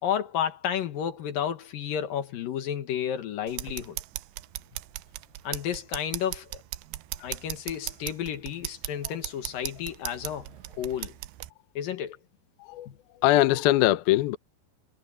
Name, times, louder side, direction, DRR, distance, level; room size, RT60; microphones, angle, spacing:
voice 1, 0.0-4.0 5.4-6.5 7.2-11.1 11.8-12.2 12.9-13.0, left 9 dB, 60° left, 2.7 m, -32 dB
sound 1, 3.5-11.5, right 17 dB, 80° right, 2.6 m, -38 dB
voice 2, 13.2-14.4, left 15 dB, 80° left, 2.3 m, -22 dB
omnidirectional pair, 5.2 m